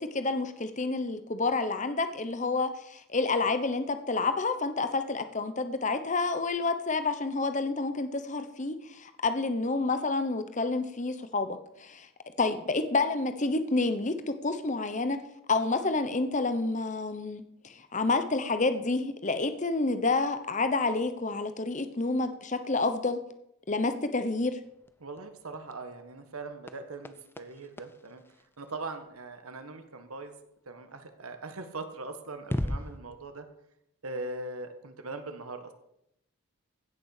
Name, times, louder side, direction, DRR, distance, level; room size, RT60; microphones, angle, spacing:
voice 1, 0.0-12.1 12.4-15.2 15.5-23.2 23.7-24.6, left 3 dB, 35° left, 10 dB, 0.9 m, -29 dB
sound 1, 24.6-29.3 31.6-31.7 32.4-33.0, left 1 dB, 10° left, 0.5 m, -39 dB
voice 2, 25.0-28.2 28.6-30.3 30.6-33.4 34.0-35.7, right 3 dB, 80° right, 7 dB, 1.6 m, -40 dB
16.0 x 6.9 x 6.6 m, 0.78 s
head